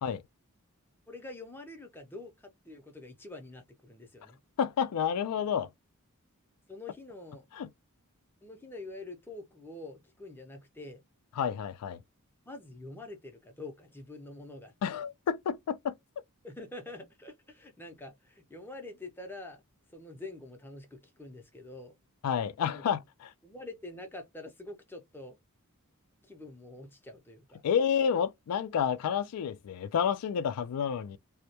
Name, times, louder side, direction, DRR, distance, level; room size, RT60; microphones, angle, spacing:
voice 1, 1.1-4.4 6.7-7.5 8.4-11.0 12.5-15.0 16.4-19.6 19.9-22.0 22.6-22.8 23.4-25.4 26.2-27.6, left 2 dB, 10° left, 0.4 m, -46 dB
voice 2, 4.6-5.7 7.5-7.7 11.4-12.0 14.8-15.9 22.2-23.3 27.6-31.2, left 7 dB, 85° left, 0.3 m, -30 dB
2.2 x 2.0 x 2.7 m
head